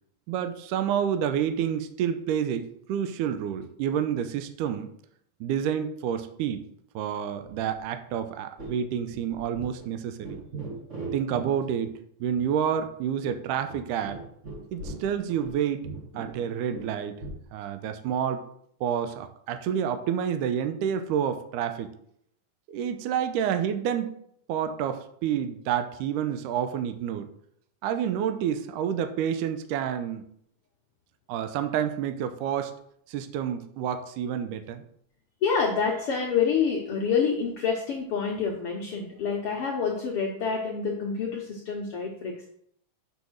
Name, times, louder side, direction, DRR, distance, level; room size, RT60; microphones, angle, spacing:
voice 1, 0.3-4.9 5.4-6.7 7.0-10.4 11.1-14.2 14.7-15.9 16.2-17.2 17.5-18.4 18.8-21.9 22.7-24.1 24.5-27.3 27.8-30.2 31.3-32.7 33.1-34.8, right 8 dB, 80° right, 9 dB, 2.1 m, -29 dB
sound 1, 7.4-7.8 8.1-8.2 8.6-8.8 9.1-9.9 10.2-11.5 11.8-11.9 12.3-12.4 12.8-12.9 13.2-15.6 15.8-17.4, right 3 dB, 40° right, 1.1 m, -40 dB
voice 2, 35.4-42.5, left 6 dB, 80° left, -1 dB, 1.2 m, -27 dB
6.5 x 5.3 x 6.2 m, 0.69 s
omnidirectional pair, 3.9 m